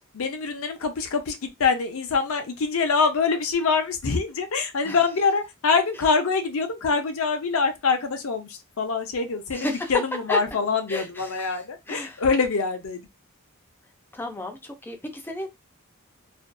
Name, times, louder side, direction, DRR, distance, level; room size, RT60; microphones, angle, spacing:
voice 1, 0.1-13.1, left 4 dB, 70° left, 0.6 m, -25 dB
voice 2, 9.5-9.9 10.3-10.4 10.9-12.2 14.1-15.5, left 1 dB, 10° left, 0.5 m, -33 dB
2.5 x 2.4 x 2.2 m
head